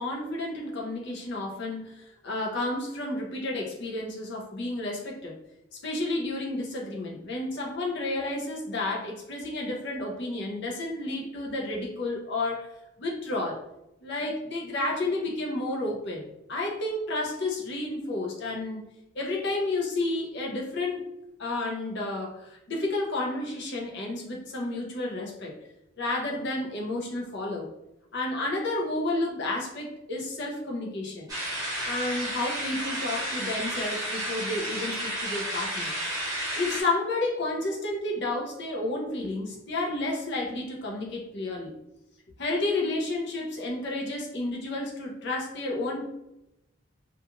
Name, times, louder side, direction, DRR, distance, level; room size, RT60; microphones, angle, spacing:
voice 1, 0.0-5.4 5.7-12.7 13.0-13.6 14.0-18.8 19.1-25.6 26.0-27.7 28.1-31.3 31.8-35.9 36.5-41.7 42.4-46.1, left 2 dB, 55° left, -1 dB, 0.6 m, -31 dB
sound 1, 31.3-36.8, right 1 dB, 15° right, 0.8 m, -32 dB
2.4 x 2.3 x 2.9 m, 0.87 s
head